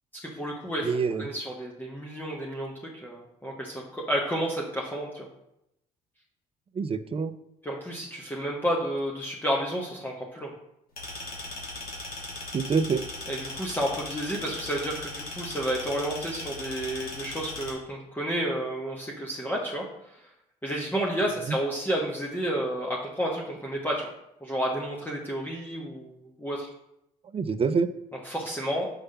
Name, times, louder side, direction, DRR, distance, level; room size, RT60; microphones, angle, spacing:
voice 1, 0.2-0.9 1.2-5.3 7.6-10.5 13.3-19.9 20.6-24.1 24.4-26.7 28.3-28.9, right 1 dB, 10° left, -2 dB, 1.3 m, -31 dB
voice 2, 0.8-1.3 6.7-7.3 12.5-13.0 21.5-21.6 27.3-27.9, right 5 dB, 30° right, 10 dB, 0.6 m, -26 dB
sound 1, 11.0-17.7, left 2 dB, 55° left, 2.2 m, -38 dB
5.9 x 3.3 x 5.5 m, 0.82 s
hypercardioid pair, 50°, 18 cm